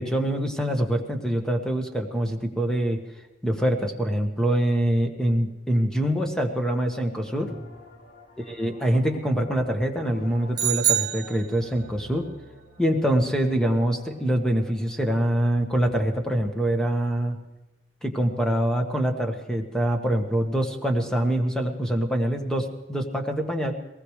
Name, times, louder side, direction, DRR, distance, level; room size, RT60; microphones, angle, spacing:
voice 1, 0.0-3.0 3.4-7.5 8.5-12.3 12.8-17.4 18.0-23.7, right 1 dB, 5° left, 4 dB, 1.4 m, -24 dB
sound 1, 6.0-6.8 7.1-17.2, equal, 60° left, 2.5 m, -49 dB
sound 2, 10.5-12.0, right 11 dB, 25° right, 1.4 m, -25 dB
22.0 x 19.0 x 3.3 m, 1.0 s
head